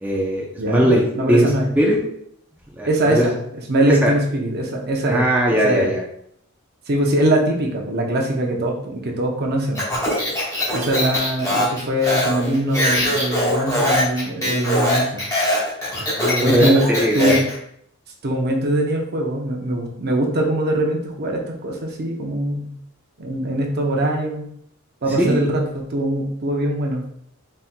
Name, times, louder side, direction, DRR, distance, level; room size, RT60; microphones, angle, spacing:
voice 1, 0.0-1.0 1.3-1.5 1.8-2.0 2.8-3.3 3.9-4.1 5.1-6.0 15.9-17.4 25.2-25.4, equal, 10° right, -3 dB, 0.6 m, -19 dB
voice 2, 0.6-1.7 2.8-5.2 5.5-5.9 6.9-9.8 10.7-15.2 16.4-16.8 17.1-17.4 18.2-22.7 23.2-24.5 25.0-27.0, right 1 dB, 50° right, 1 dB, 0.7 m, -22 dB
Speech, 9.7-17.5, left 1 dB, 15° left, 1.4 m, -22 dB
4.2 x 4.0 x 2.2 m, 0.69 s
head